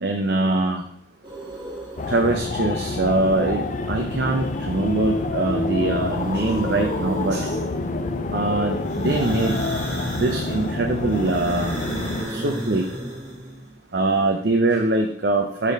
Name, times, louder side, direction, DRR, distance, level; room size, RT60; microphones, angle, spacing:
voice 1, 0.0-0.8 2.1-7.5 8.3-9.6 10.2-11.8 12.3-12.9 13.9-15.7, right 2 dB, 60° right, 0.6 m, -23 dB
sound 1, 1.2-2.5 4.2-5.2 5.5-8.1 8.8-13.7, right 1 dB, 25° right, 1.5 m, -35 dB
sound 2, 2.0-12.2, left 2 dB, 40° left, 0.4 m, -27 dB
5.1 x 4.2 x 5.2 m
head